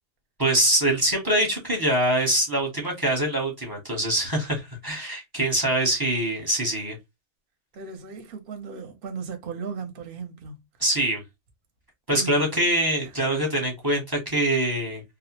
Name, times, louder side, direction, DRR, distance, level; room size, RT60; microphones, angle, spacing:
voice 1, 0.4-7.0 10.8-11.2 12.1-15.0, right 1 dB, 20° right, 0.8 m, -24 dB
voice 2, 7.7-10.6 12.1-12.6 13.3-13.4, right 5 dB, 55° right, 0.8 m, -37 dB
2.3 x 2.0 x 2.8 m
omnidirectional pair, 1.2 m